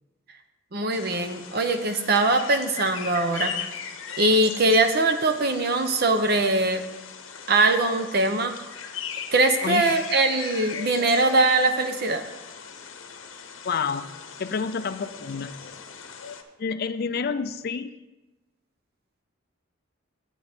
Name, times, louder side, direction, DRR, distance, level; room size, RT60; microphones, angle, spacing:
voice 1, 0.7-3.6 4.2-6.9 7.5-8.5 9.3-12.2, right 2 dB, 50° right, 7 dB, 0.8 m, -22 dB
sound 1, 0.9-16.4, left 7 dB, 70° left, 0.8 m, -38 dB
voice 2, 9.6-9.9 13.6-14.1 14.4-15.5 16.6-17.9, left 5 dB, 50° left, 12 dB, 0.4 m, -29 dB
8.6 x 8.1 x 4.4 m, 1.1 s
head